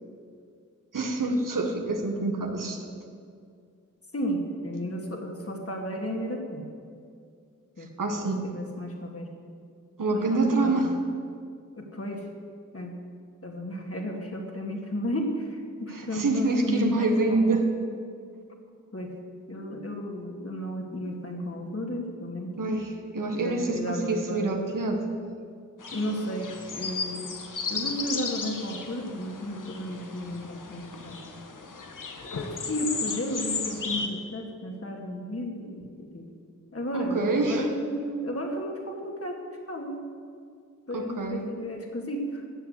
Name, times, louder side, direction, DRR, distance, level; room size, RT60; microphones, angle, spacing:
voice 1, 0.9-2.9 8.0-8.5 10.0-11.0 15.9-17.7 22.6-25.1 36.9-37.7 40.9-41.5, right 2 dB, 80° right, 3 dB, 1.7 m, -26 dB
voice 2, 4.1-6.6 7.8-9.3 10.1-10.9 11.8-12.2 12.7-12.9 13.4-17.6 18.9-19.1 19.5-22.6 23.3-24.5 25.9-27.4 27.7-31.2 32.2-36.3 36.7-39.4 39.7-39.9 40.9-42.5, equal, 45° left, 0 dB, 2.7 m, -33 dB
sound 1, 25.8-34.1, left 4 dB, 80° left, 1.4 m, -35 dB
13.5 x 7.7 x 8.4 m, 2.3 s
cardioid pair, 45°, 32 cm